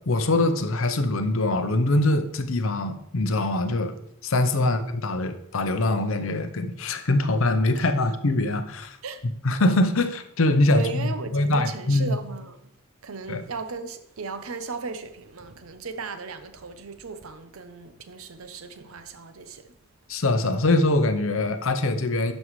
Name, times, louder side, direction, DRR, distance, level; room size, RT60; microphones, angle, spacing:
voice 1, 0.0-4.0 4.2-9.0 9.4-12.2 13.3-13.4 20.1-22.3, left 2 dB, 75° left, 0.7 m, -23 dB
voice 2, 10.7-12.6 13.0-19.6, right 4 dB, 85° right, 0.7 m, -36 dB
12.0 x 5.4 x 3.2 m
head